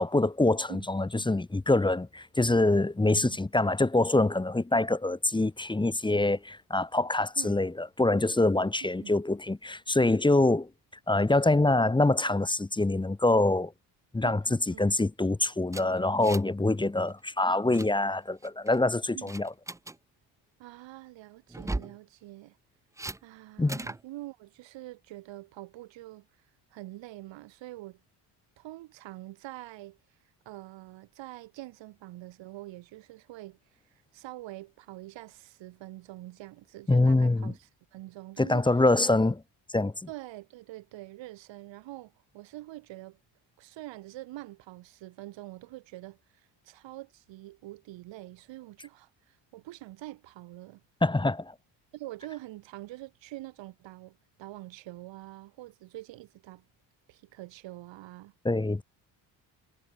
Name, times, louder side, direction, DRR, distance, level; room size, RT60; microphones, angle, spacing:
voice 1, 0.0-10.7 11.1-13.7 14.1-19.5 23.6-23.8 36.9-37.5 38.4-39.4 39.7-39.9 51.0-51.5 58.4-58.8, left 2 dB, 10° left, 1.3 m, -25 dB
voice 2, 14.2-14.9 19.1-19.3 20.6-22.6 23.2-26.3 26.7-28.0 28.6-30.0 30.5-33.6 34.1-38.7 40.1-43.2 43.6-50.8 51.9-56.6 57.1-58.3, right 17 dB, 80° right, 3.5 m, -45 dB
sound 1, 15.7-16.6 16.9-17.1 17.4-17.9 18.4-18.8 19.3-20.0 21.5-22.0 23.0-23.2 23.7-24.0, right 2 dB, 5° right, 0.7 m, -37 dB
cardioid pair, 105°, 44 cm